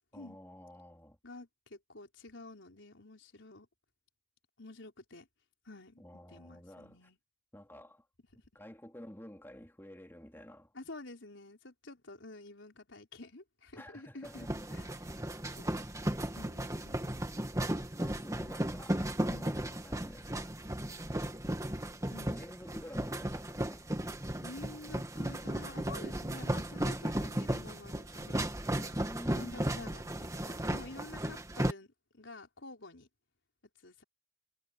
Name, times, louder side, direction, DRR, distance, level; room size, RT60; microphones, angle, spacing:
voice 1, 0.1-1.2 6.0-7.1 7.5-8.1 8.5-10.7 13.7-14.5 18.0-20.6 22.3-23.9 29.0-29.9, equal, 10° left, 2.6 m, -50 dB
voice 2, 1.2-3.7 4.6-5.3 5.6-6.0 6.3-7.2 10.7-15.1 15.5-15.8 16.4-17.3 18.4-18.6 19.3-19.6 22.1-22.3 24.4-29.0 29.3-31.9 32.1-33.1 33.8-34.0, left 2 dB, 80° left, 4.2 m, -50 dB
sound 1, 14.3-31.7, right 1 dB, 15° right, 1.9 m, -35 dB
head